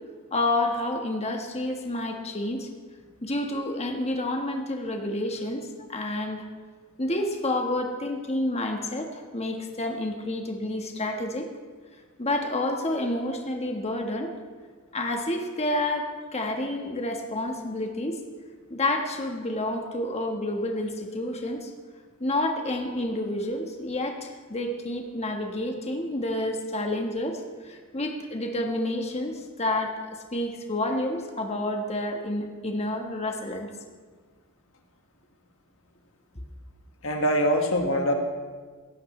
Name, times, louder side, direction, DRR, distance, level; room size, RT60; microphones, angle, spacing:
voice 1, 0.3-2.7 3.2-6.5 7.0-11.5 12.2-14.3 14.9-18.2 18.7-21.7 22.2-33.7, left 1 dB, 30° left, 3 dB, 1.4 m, -29 dB
voice 2, 37.0-38.1, equal, 65° left, 2 dB, 1.8 m, -23 dB
17.0 x 14.0 x 3.2 m, 1.5 s
head